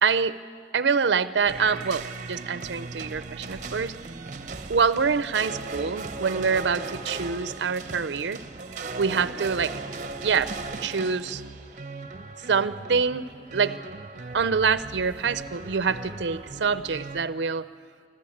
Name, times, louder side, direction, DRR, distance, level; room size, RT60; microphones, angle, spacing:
voice 1, 0.0-0.3 0.7-3.9 4.7-8.4 9.0-9.7 10.2-10.5 10.8-11.4 12.5-13.8 14.3-17.6, right 5 dB, 80° right, 14 dB, 0.6 m, -25 dB
sound 1, 1.5-17.2, right 3 dB, 45° right, 0.8 m, -37 dB
24.0 x 14.0 x 8.6 m, 2.2 s
head